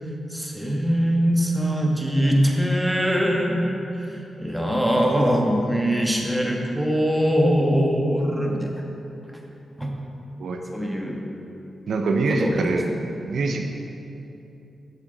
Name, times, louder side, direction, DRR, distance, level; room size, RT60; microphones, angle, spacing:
voice 1, 0.3-8.7 9.8-9.9 10.7-11.2 12.3-12.8, equal, 5° right, 0 dB, 1.3 m, -22 dB
voice 2, 11.9-12.9 13.3-13.6, right 3 dB, 75° right, 4 dB, 0.6 m, -24 dB
7.7 x 7.3 x 3.9 m, 2.8 s
cardioid pair, 65°, 0 cm